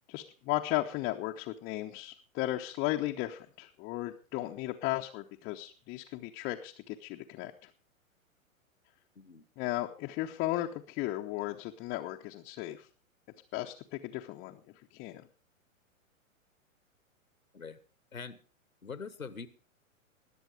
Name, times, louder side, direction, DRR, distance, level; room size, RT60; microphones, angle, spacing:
voice 1, 0.1-7.7 9.6-12.9 13.5-14.6 14.9-15.2, left 16 dB, 20° left, 1 dB, 0.8 m, -35 dB
voice 2, 18.8-19.5, left 5 dB, 80° left, 15 dB, 1.3 m, -43 dB
20.0 x 7.9 x 4.9 m, 0.37 s
figure-of-eight pair, 105°, 41 cm